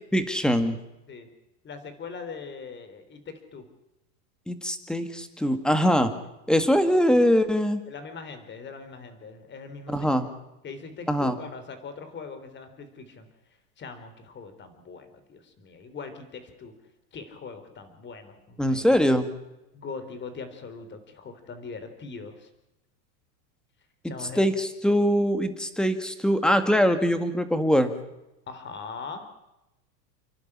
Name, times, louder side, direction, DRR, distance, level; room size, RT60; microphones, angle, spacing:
voice 1, 0.1-0.8 4.5-6.1 6.5-7.8 9.9-10.3 11.1-11.4 18.6-19.3 24.0-27.9, equal, ahead, 9 dB, 1.9 m, -22 dB
voice 2, 1.6-3.7 7.9-10.2 10.6-13.3 13.8-16.7 17.1-18.9 19.7-22.5 24.1-24.5 28.5-29.3, left 5 dB, 25° left, 10 dB, 3.7 m, -41 dB
29.5 x 11.5 x 9.9 m, 0.94 s
supercardioid pair, 145°, 46 cm